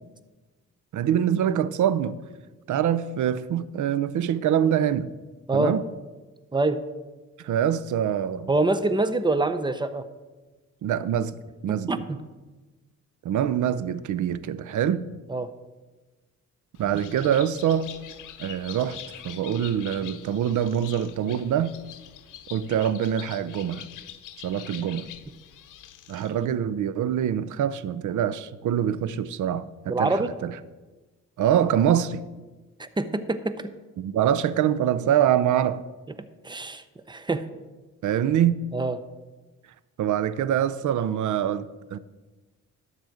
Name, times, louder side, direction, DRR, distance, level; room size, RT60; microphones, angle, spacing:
voice 1, 0.9-2.2 2.7-5.1 5.5-5.8 7.4-8.5 10.8-11.3 11.6-12.0 13.2-15.1 16.8-17.9 18.4-21.7 22.5-23.9 24.4-25.1 26.1-30.6 31.4-32.2 34.0-35.8 38.0-38.7 40.0-42.0, right 9 dB, 75° right, 0.6 m, -24 dB
voice 2, 8.5-10.0 11.7-12.2 15.3-15.5 29.9-30.3 32.8-33.7 36.4-37.4 38.7-39.0, right 2 dB, 15° right, 0.6 m, -25 dB
Bird, 16.7-26.5, left 11 dB, 90° left, 0.7 m, -44 dB
12.0 x 4.1 x 7.7 m
cardioid pair, 105°, 30 cm